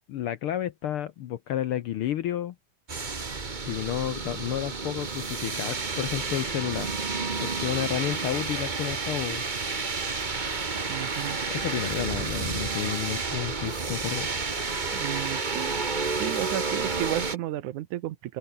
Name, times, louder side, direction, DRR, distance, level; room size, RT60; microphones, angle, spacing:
voice 1, 0.0-2.5 3.6-6.9 7.4-9.4 11.5-14.3, left 11 dB, 70° left, 1.3 m, -31 dB
sound 1, 2.9-17.4, right 4 dB, 50° right, 0.5 m, -30 dB
voice 2, 10.9-11.4 14.9-15.7 16.1-18.4, right 14 dB, 90° right, 2.5 m, -33 dB
open air
omnidirectional pair, 3.4 m